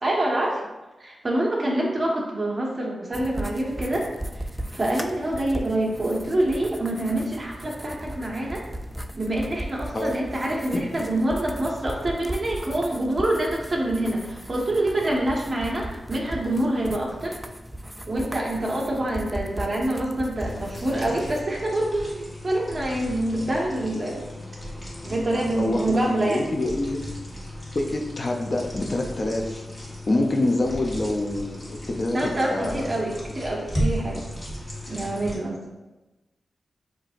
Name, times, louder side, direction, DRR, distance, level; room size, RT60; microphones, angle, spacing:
voice 1, 0.0-0.6 1.0-4.1 4.3-4.4 4.7-8.6 9.1-17.4 18.1-24.2 25.0-26.5 32.1-34.2 34.9-35.6, right 1 dB, 35° right, -3 dB, 1.2 m, -26 dB
sound 1, 3.1-21.4, right 1 dB, 5° right, 0.3 m, -37 dB
sound 2, 20.4-35.4, equal, 25° left, 1.4 m, -35 dB
voice 2, 25.6-27.0 27.7-29.6 30.1-32.9, left 2 dB, 40° left, 2 dB, 0.6 m, -26 dB
7.4 x 2.7 x 2.5 m, 1.1 s
wide cardioid pair, 100°, 0 cm